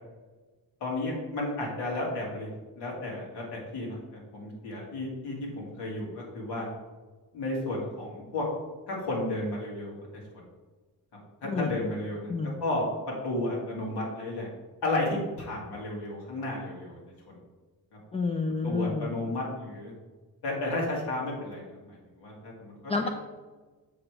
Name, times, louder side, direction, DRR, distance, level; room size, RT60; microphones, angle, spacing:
voice 1, 0.8-6.7 7.3-8.5 8.9-9.9 11.4-12.8 13.2-14.5 14.8-17.0 17.3-17.4 18.6-19.9 20.4-22.9, left 2 dB, 80° left, -3 dB, 2.3 m, -33 dB
voice 2, 11.4-11.8 12.3-12.6 18.1-19.1 22.9-23.1, left 4 dB, 15° left, 4 dB, 0.3 m, -29 dB
7.0 x 3.3 x 5.9 m, 1.3 s
cardioid pair, 150°, 39 cm